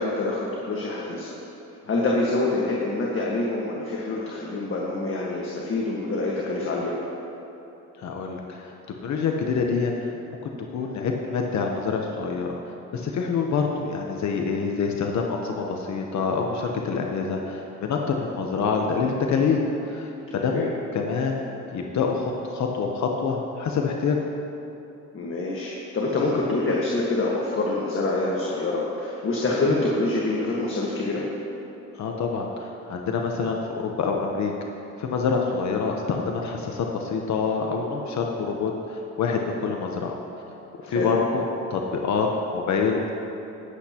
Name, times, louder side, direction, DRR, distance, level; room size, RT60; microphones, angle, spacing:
voice 1, 0.0-1.4 1.9-6.9 20.3-20.7 25.1-31.2 40.9-41.1, left 2 dB, 45° left, -4 dB, 1.6 m, -26 dB
voice 2, 8.0-8.7 9.0-10.4 10.7-12.6 12.9-21.4 21.7-24.2 31.9-34.5 35.0-40.1 40.8-41.4 41.7-43.0, left 5 dB, 65° left, 1 dB, 1.0 m, -26 dB
20.0 x 8.1 x 3.0 m, 3.0 s
cardioid pair, 90°, 30 cm